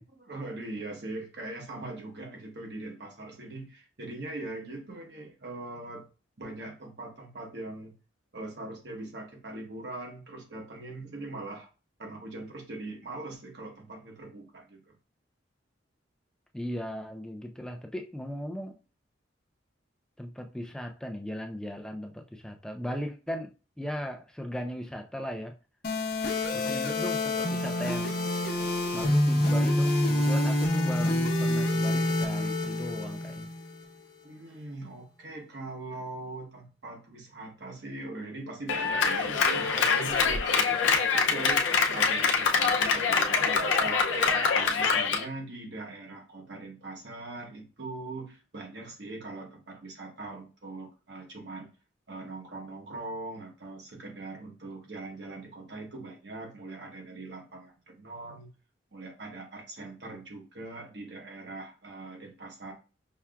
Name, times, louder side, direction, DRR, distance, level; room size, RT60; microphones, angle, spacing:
voice 1, 0.2-6.1 6.4-8.0 8.3-11.7 12.0-14.9 34.2-51.7 52.1-58.5 58.9-62.7, right 2 dB, 65° right, 1.0 m, -41 dB
voice 2, 16.5-18.8 20.2-25.6 26.5-28.2 28.9-33.5, equal, 5° left, 0.3 m, -37 dB
sound 1, 25.8-33.8, left 1 dB, 55° left, 0.9 m, -27 dB
Clapping, 38.7-45.2, left 5 dB, 85° left, 0.5 m, -25 dB
5.6 x 2.4 x 2.3 m
head